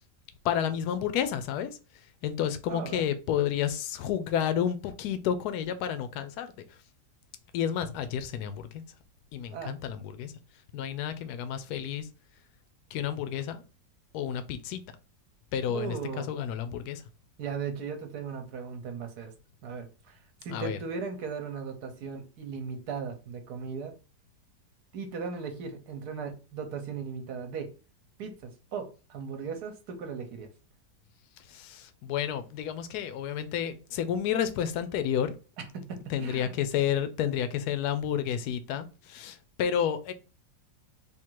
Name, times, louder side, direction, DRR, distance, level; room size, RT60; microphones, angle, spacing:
voice 1, 0.4-6.8 7.5-8.8 9.3-10.3 10.7-12.1 12.9-13.6 14.1-14.8 15.5-17.0 20.5-20.8 31.4-35.4 36.1-40.1, left 9 dB, 70° left, 1.0 m, -31 dB
voice 2, 2.7-3.0 9.5-9.7 15.7-16.3 17.4-19.3 19.6-23.9 24.9-27.7 28.2-30.5 35.7-36.5, right 5 dB, 65° right, 1.2 m, -37 dB
3.6 x 2.5 x 4.6 m
omnidirectional pair, 2.0 m